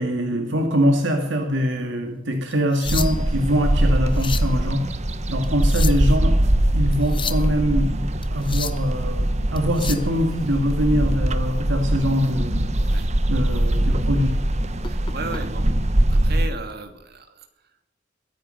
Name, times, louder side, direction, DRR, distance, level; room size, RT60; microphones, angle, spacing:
voice 1, 0.0-4.8 5.3-6.4 6.7-8.0 8.3-12.7 13.3-14.4, equal, 75° right, 4 dB, 2.1 m, -23 dB
sound 1, 2.5-3.4 4.0-4.6 5.4-6.2 6.9-7.5 8.2-8.9 9.6-10.1 12.1-12.3 12.8-13.0 13.5-13.6 14.8-15.4 16.5-16.7, left 7 dB, 25° left, 0.9 m, -33 dB
sound 2, 2.8-16.5, right 1 dB, 35° right, 1.0 m, -22 dB
voice 2, 14.8-15.7 16.1-17.9, right 3 dB, 55° right, 5 dB, 2.7 m, -36 dB
22.5 x 10.0 x 6.5 m, 0.87 s
head